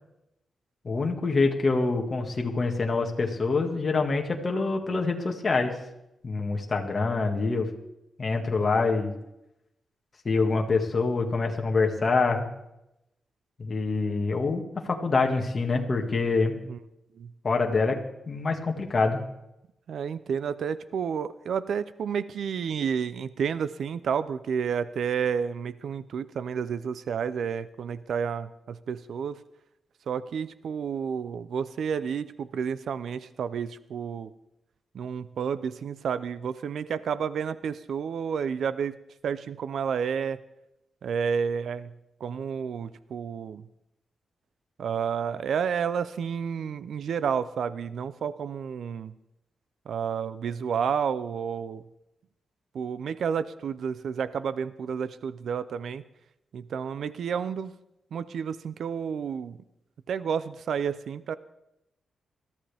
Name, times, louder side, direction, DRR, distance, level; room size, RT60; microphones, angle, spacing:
voice 1, 0.9-5.7 6.2-7.7 8.2-9.1 10.3-12.5 13.6-16.5 17.4-18.0 18.3-19.2, left 3 dB, 35° left, 2 dB, 1.8 m, -25 dB
voice 2, 19.9-29.4 30.1-34.3 34.9-39.0 39.2-40.4 41.0-41.9 42.2-43.6 44.8-49.1 49.9-51.8 52.7-56.0 56.5-57.7 58.1-59.6 60.1-61.4, right 7 dB, 70° right, 14 dB, 0.6 m, -30 dB
21.5 x 13.5 x 3.5 m, 0.85 s
wide cardioid pair, 140°, 0 cm